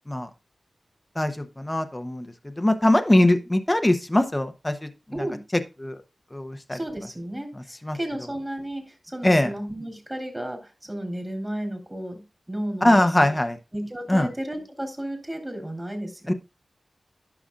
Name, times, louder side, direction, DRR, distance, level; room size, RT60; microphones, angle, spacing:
voice 1, 1.2-2.3 2.6-4.9 5.8-6.0 6.3-6.8 7.8-8.0 9.2-9.5 12.8-13.6 14.1-14.3 16.3-16.4, left 1 dB, 20° left, 8 dB, 0.9 m, -21 dB
voice 2, 6.7-7.5 7.9-13.4 13.7-16.3, right 1 dB, 20° right, 3 dB, 3.3 m, -33 dB
11.0 x 6.0 x 2.5 m, 0.26 s
cardioid pair, 45°, 0 cm